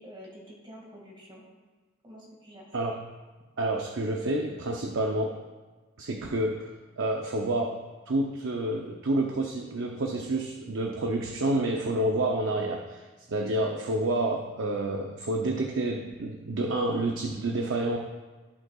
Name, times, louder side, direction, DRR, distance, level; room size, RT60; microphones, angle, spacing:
voice 1, 0.0-1.4 2.0-2.9, equal, 25° right, -2 dB, 2.0 m, -48 dB
voice 2, 3.6-5.4 6.0-6.7 7.0-18.0, right 1 dB, 65° right, 2 dB, 0.6 m, -29 dB
15.0 x 5.4 x 2.4 m, 1.4 s
head